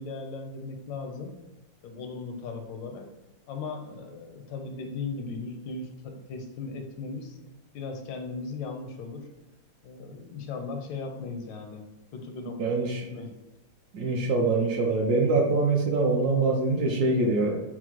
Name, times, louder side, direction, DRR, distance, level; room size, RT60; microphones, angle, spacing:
voice 1, 0.0-1.3 1.8-3.1 3.5-7.4 7.7-9.3 9.8-11.8 12.1-13.3, left 4 dB, 85° left, 4 dB, 1.4 m, -37 dB
voice 2, 12.6-13.0 13.9-17.6, right 3 dB, 70° right, 1 dB, 1.0 m, -24 dB
5.9 x 2.0 x 2.9 m, 1.0 s
omnidirectional pair, 2.0 m